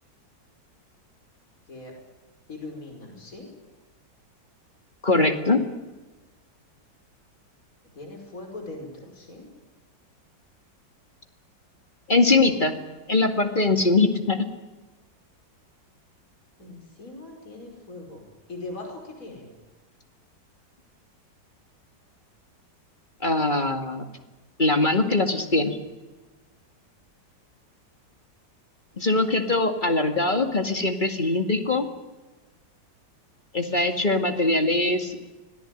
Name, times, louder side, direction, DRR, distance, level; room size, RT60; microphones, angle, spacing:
voice 1, 2.5-3.5 7.9-9.5 16.6-19.5, left 2 dB, 50° left, 2 dB, 5.6 m, -40 dB
voice 2, 5.0-5.6 12.1-12.7 13.1-14.5 23.2-24.0 24.6-25.8 29.0-31.9 33.5-35.2, left 2 dB, 25° left, 5 dB, 2.2 m, -22 dB
25.0 x 18.5 x 9.1 m, 1.1 s
omnidirectional pair, 1.9 m